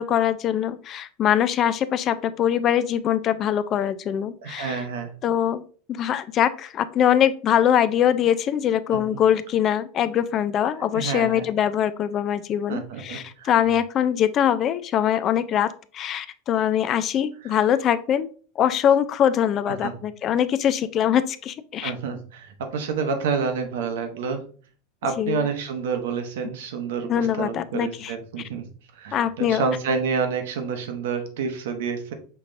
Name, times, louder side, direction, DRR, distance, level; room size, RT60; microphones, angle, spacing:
voice 1, 0.0-4.8 5.2-5.6 5.9-18.3 18.6-21.9 25.2-25.5 27.1-28.1 29.1-29.6, left 9 dB, 40° left, 14 dB, 0.3 m, -23 dB
voice 2, 4.4-5.1 8.9-9.2 10.9-11.5 12.7-13.5 17.4-17.5 19.7-19.9 21.8-24.4 25.0-28.6 28.9-32.1, right 5 dB, 80° right, 6 dB, 0.9 m, -28 dB
5.6 x 3.1 x 2.5 m, 0.42 s
supercardioid pair, 120°, 0 cm